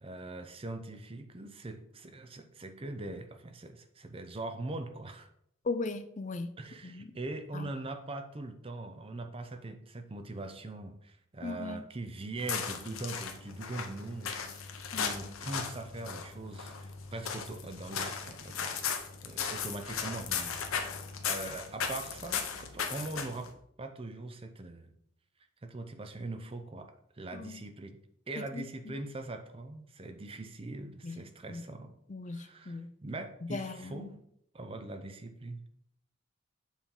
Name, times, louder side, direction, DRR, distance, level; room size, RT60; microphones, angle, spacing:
voice 1, 0.0-5.3 6.6-18.8 19.2-20.6 21.2-23.5 23.8-24.9 25.6-28.0 28.3-31.9 32.3-34.2 34.5-35.6, right 2 dB, 25° right, 7 dB, 0.5 m, -42 dB
voice 2, 5.6-6.5 6.8-7.1 7.5-7.7 11.4-11.9 14.9-15.2 27.3-27.6 28.5-29.0 31.0-31.2 31.5-31.6 32.1-32.9 33.4-34.1, left 3 dB, 35° left, 9 dB, 0.4 m, -38 dB
sound 1, 12.4-23.5, left 6 dB, 80° left, 0.9 m, -37 dB
7.2 x 3.6 x 5.4 m, 0.72 s
head